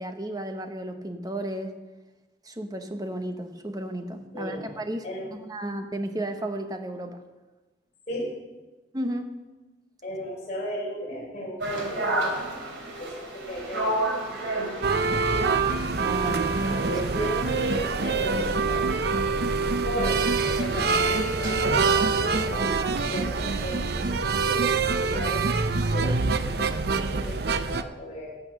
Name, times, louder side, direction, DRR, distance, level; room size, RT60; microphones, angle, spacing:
voice 1, 0.0-1.8 2.4-5.0 5.3-7.2 8.9-9.3 16.0-16.9, right 1 dB, 20° right, 6 dB, 1.0 m, -33 dB
voice 2, 10.0-12.7 13.0-15.6 16.2-19.4 19.8-25.5 25.9-28.4, equal, 40° left, -4 dB, 4.5 m, -35 dB
sound 1, 11.6-23.4, right 1 dB, 80° right, 2.8 m, -34 dB
sound 2, 14.8-27.8, right 4 dB, 55° right, 0.6 m, -25 dB
15.0 x 8.4 x 6.7 m, 1.2 s
head